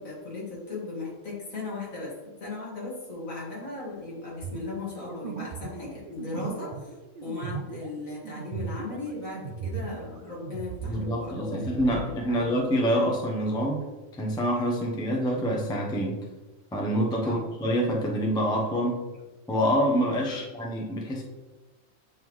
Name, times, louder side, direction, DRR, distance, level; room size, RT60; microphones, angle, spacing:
voice 1, 0.0-2.1 2.4-6.9 7.2-12.4 17.2-17.4 20.3-20.4, left 3 dB, 70° left, -5 dB, 2.4 m, -37 dB
sound 1, 4.4-10.2 10.4-12.0, right 5 dB, 80° right, 0.4 m, -37 dB
voice 2, 10.8-13.8 14.2-16.2 16.7-19.0 19.5-21.2, equal, 5° left, -1 dB, 0.5 m, -26 dB
8.8 x 3.6 x 3.1 m, 1.2 s
omnidirectional pair, 1.5 m